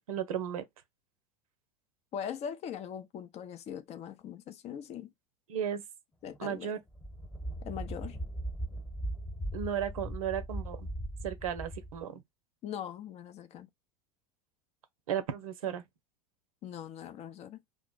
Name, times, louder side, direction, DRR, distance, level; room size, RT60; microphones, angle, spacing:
voice 1, 0.1-0.7 5.5-5.8 6.4-6.8 9.5-10.9 11.2-12.2 15.1-15.8, right 9 dB, 75° right, 0.6 m, -34 dB
voice 2, 2.1-5.1 6.2-6.7 7.6-8.2 12.6-13.7 16.6-17.6, left 8 dB, 35° left, 0.5 m, -41 dB
sound 1, 6.3-6.4 6.9-12.0, right 1 dB, 10° left, 1.0 m, -39 dB
2.4 x 2.1 x 3.9 m
hypercardioid pair, 80°, 18 cm